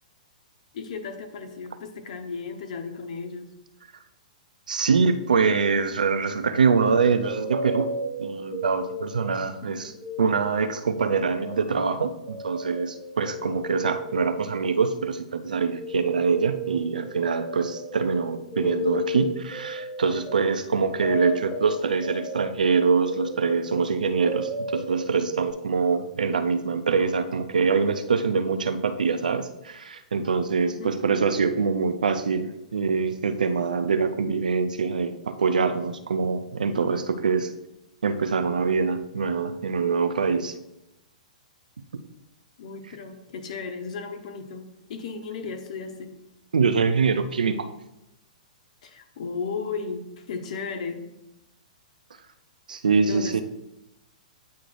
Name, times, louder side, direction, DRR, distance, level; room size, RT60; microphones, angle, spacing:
voice 1, 0.7-3.5 9.6-9.9 30.6-30.9 42.6-46.1 48.8-51.0 53.0-53.4, left 5 dB, 60° left, 6 dB, 1.0 m, -35 dB
voice 2, 4.7-7.9 8.2-9.9 10.2-37.5 38.0-40.5 46.5-47.7 52.7-53.4, right 5 dB, 80° right, 9 dB, 0.5 m, -24 dB
sound 1, 7.2-9.5 9.8-25.5, left 1 dB, 5° right, 1.1 m, -35 dB
8.3 x 6.0 x 2.5 m, 0.90 s
hypercardioid pair, 120°, 4 cm